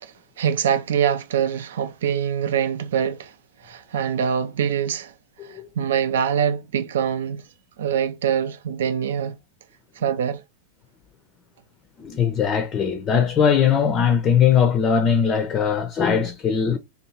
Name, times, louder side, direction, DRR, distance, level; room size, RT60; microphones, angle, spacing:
voice 1, 0.0-3.3 3.6-5.1 5.4-7.4 7.8-9.4 10.0-10.4, right 8 dB, 65° right, 0.3 m, -24 dB
voice 2, 12.0-16.8, left 7 dB, 30° left, 0.4 m, -20 dB
2.6 x 2.3 x 2.8 m
figure-of-eight pair, 90°, 0 cm